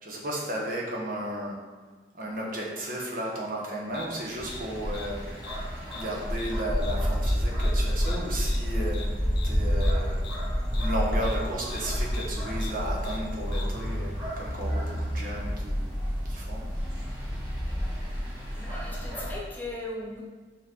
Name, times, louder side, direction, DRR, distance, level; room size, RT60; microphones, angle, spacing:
voice 1, 0.0-1.6 2.1-5.4 5.9-9.2 9.4-15.9 16.3-16.7, right 1 dB, 50° right, -3 dB, 1.2 m, -34 dB
sound 1, 3.9-13.9, left 4 dB, 60° left, 0.6 m, -46 dB
sound 2, 4.4-19.3, equal, 25° right, 2.0 m, -29 dB
voice 2, 18.6-20.2, left 2 dB, 10° left, -4 dB, 1.1 m, -38 dB
6.4 x 4.7 x 3.8 m, 1.4 s
head